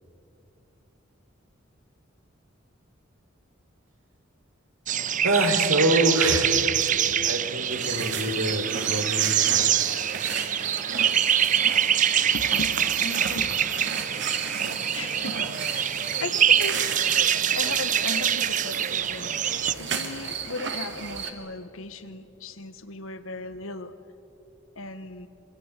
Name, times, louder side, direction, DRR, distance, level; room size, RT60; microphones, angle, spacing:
sound 1, 4.9-19.7, right 9 dB, 40° right, 0.6 m, -25 dB
voice 1, 5.2-6.6 7.3-9.7, right 1 dB, 80° right, 4 dB, 4.1 m, -25 dB
sound 2, 7.7-21.3, right 6 dB, 60° right, 2.3 m, -34 dB
voice 2, 12.3-23.9 24.7-25.3, left 2 dB, 85° left, 11 dB, 1.5 m, -38 dB
26.5 x 24.0 x 8.4 m, 2.9 s
head